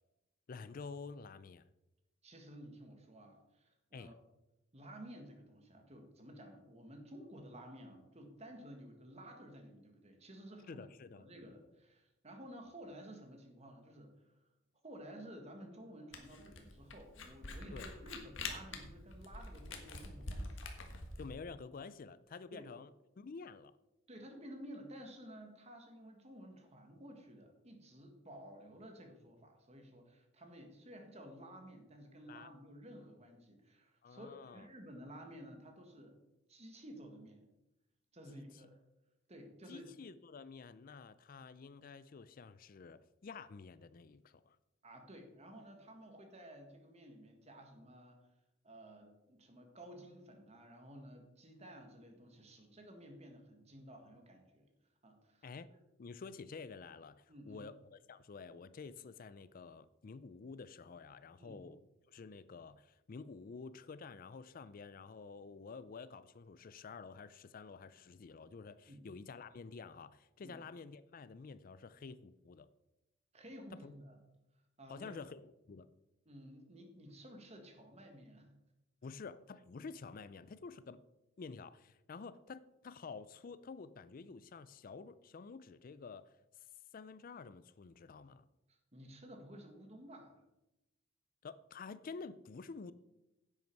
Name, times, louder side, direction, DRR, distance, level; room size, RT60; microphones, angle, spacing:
voice 1, 0.5-1.7 3.9-4.1 10.7-11.2 17.7-17.9 21.2-22.9 23.2-23.7 32.3-32.5 34.0-34.7 38.3-38.5 39.7-44.6 55.4-55.7 56.0-61.8 62.1-72.7 73.8-73.9 74.9-75.9 79.0-81.0 81.4-86.3 86.9-88.5 91.4-92.9, left 4 dB, 45° left, 16 dB, 0.4 m, -50 dB
voice 2, 2.2-4.1 4.7-10.8 11.1-14.4 14.8-20.6 22.5-22.6 24.1-36.2 36.5-37.5 38.1-38.8 39.3-39.9 44.8-48.3 48.6-54.7 55.0-55.5 57.3-57.6 61.4-61.6 68.9-69.1 70.4-70.6 73.3-74.2 74.8-75.1 76.2-78.5 88.7-90.4, right 1 dB, 35° right, 4 dB, 1.7 m, -53 dB
Camera, 16.1-21.3, left 3 dB, 65° left, 1.5 m, -45 dB
10.5 x 8.0 x 4.6 m, 0.95 s
head